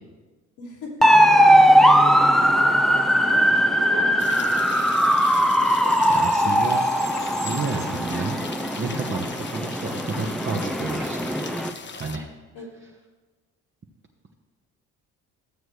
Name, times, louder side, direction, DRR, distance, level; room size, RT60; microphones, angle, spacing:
voice 1, 0.6-0.9 1.2-1.3 2.5-4.5 12.5-12.7, left 2 dB, 75° left, -5 dB, 2.9 m, -39 dB
sound 1, 1.0-11.7, equal, ahead, 0.6 m, -19 dB
sound 2, 4.2-12.2, left 5 dB, 30° left, 0.8 m, -39 dB
voice 2, 6.1-6.8 7.4-8.4 8.8-11.4 11.9-12.3, right 4 dB, 30° right, 0 dB, 1.1 m, -30 dB
13.0 x 7.8 x 3.2 m, 1.3 s
hypercardioid pair, 50°, 39 cm